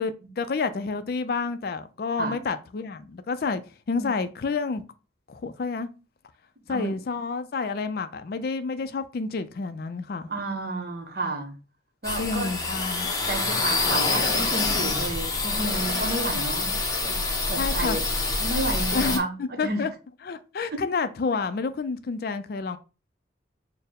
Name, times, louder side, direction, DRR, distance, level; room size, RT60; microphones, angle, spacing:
voice 1, 0.0-3.6 3.9-4.8 5.3-5.9 6.7-10.3 12.2-13.1 17.6-18.0 18.9-19.9 20.2-22.8, left 4 dB, 55° left, 0.3 m, -29 dB
voice 2, 10.3-11.6 12.0-12.5 13.3-17.2 17.4-18.0 18.4-19.8 20.7-20.8, right 2 dB, 55° right, 0.8 m, -31 dB
sound 1, 12.0-19.2, left 3 dB, 20° left, 0.6 m, -26 dB
4.3 x 2.0 x 3.5 m
head